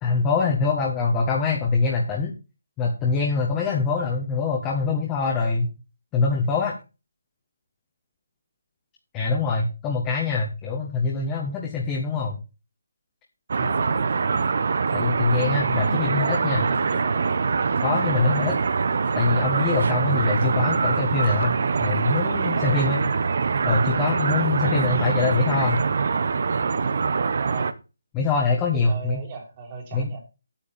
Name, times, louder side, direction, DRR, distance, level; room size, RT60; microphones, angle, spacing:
voice 1, 0.0-2.3 2.8-5.7 6.1-6.7 9.1-12.4 14.9-16.6 17.8-18.6 19.1-23.0 23.6-25.8 28.1-29.2 29.9-30.1, left 4 dB, 15° left, -2 dB, 1.6 m, -24 dB
voice 2, 9.3-9.6 13.5-14.2 16.2-17.2 22.4-22.8 25.2-25.6 27.4-27.8 28.7-30.2, right 4 dB, 25° right, 0 dB, 2.7 m, -38 dB
sound 1, 13.5-27.7, right 5 dB, 50° right, 0.9 m, -24 dB
9.0 x 8.4 x 5.4 m, 0.30 s
figure-of-eight pair, 165°, 0 cm